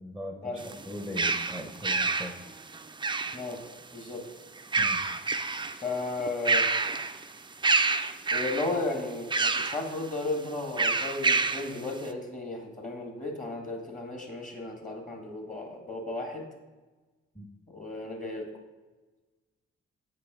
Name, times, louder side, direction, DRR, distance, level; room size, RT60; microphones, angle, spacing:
voice 1, 0.0-2.4 4.8-5.1 17.3-17.5, left 1 dB, 5° left, 4 dB, 0.8 m, -40 dB
sound 1, 0.6-3.7 4.6-5.8 6.2-7.2 7.6-8.8 9.3-9.8 10.8-11.7, right 3 dB, 15° right, 0.4 m, -27 dB
voice 2, 3.9-4.2 5.8-6.7 8.3-16.5 17.7-18.5, left 2 dB, 25° left, 2 dB, 1.8 m, -34 dB
8.1 x 4.8 x 3.7 m, 1.2 s
hypercardioid pair, 40°, 29 cm